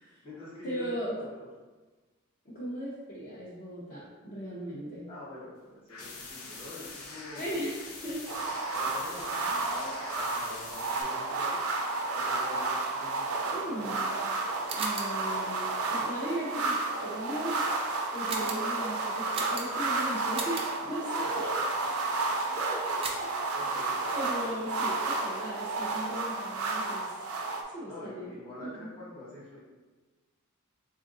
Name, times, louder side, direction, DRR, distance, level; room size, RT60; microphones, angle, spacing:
voice 1, 0.0-1.5 5.1-7.5 8.7-11.6 12.1-14.3 18.2-18.5 21.1-21.3 23.5-24.0 24.2-24.5 27.9-29.6, left 2 dB, 25° left, -8 dB, 1.2 m, -46 dB
voice 2, 0.6-1.1 2.4-5.1 7.3-8.2 13.5-14.1 14.7-16.8 17.0-17.6 18.1-21.7 22.1-23.0 24.1-27.1 27.7-28.3 28.6-28.9, equal, 40° left, -9 dB, 0.7 m, -37 dB
sound 1, 5.9-11.0, left 3 dB, 90° left, 0.6 m, -44 dB
sound 2, 8.3-27.6, right 3 dB, 80° right, 0.5 m, -31 dB
sound 3, 14.6-15.2 18.3-18.7 19.3-19.9 20.3-20.8 23.0-23.4, right 4 dB, 25° right, 0.4 m, -37 dB
3.6 x 2.5 x 3.8 m, 1.3 s
head